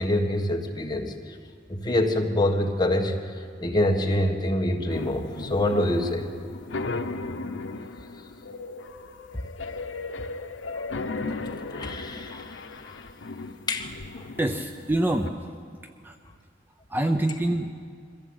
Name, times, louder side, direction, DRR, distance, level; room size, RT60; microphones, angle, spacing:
voice 1, 0.0-1.3 1.7-3.2 3.6-6.3 11.3-11.4 11.7-13.0 13.7-14.3, left 1 dB, 25° left, 2 dB, 1.6 m, -26 dB
sound 1, 4.9-15.3, left 3 dB, 85° left, 0.8 m, -36 dB
voice 2, 14.4-15.3 16.0-16.2 16.9-17.9, right 1 dB, 10° right, 6 dB, 0.7 m, -25 dB
23.0 x 15.5 x 8.1 m, 2.1 s
head